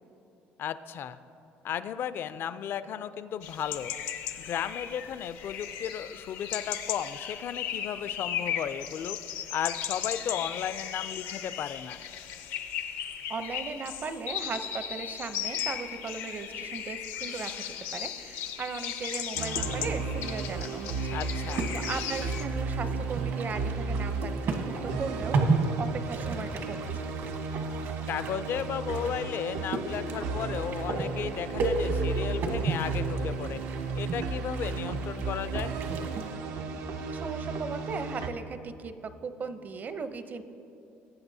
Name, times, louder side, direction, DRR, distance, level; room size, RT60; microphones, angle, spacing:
voice 1, 0.6-1.2 1.6-3.9 4.4-9.2 9.5-12.0 21.1-21.7 28.1-33.6 34.0-35.7, left 9 dB, 55° left, 13 dB, 0.4 m, -34 dB
sound 1, 3.4-22.5, left 9 dB, 85° left, 0.7 m, -36 dB
voice 2, 13.3-17.6 17.9-21.2 21.7-24.4 24.6-25.5 25.8-27.1 37.1-40.4, right 5 dB, 40° right, 10 dB, 0.6 m, -37 dB
sound 2, 19.4-38.3, right 4 dB, 85° right, 0.7 m, -34 dB
sound 3, 21.4-36.3, right 3 dB, 65° right, 1.3 m, -34 dB
18.5 x 8.5 x 2.7 m, 2.7 s
cardioid pair, 95°, 4 cm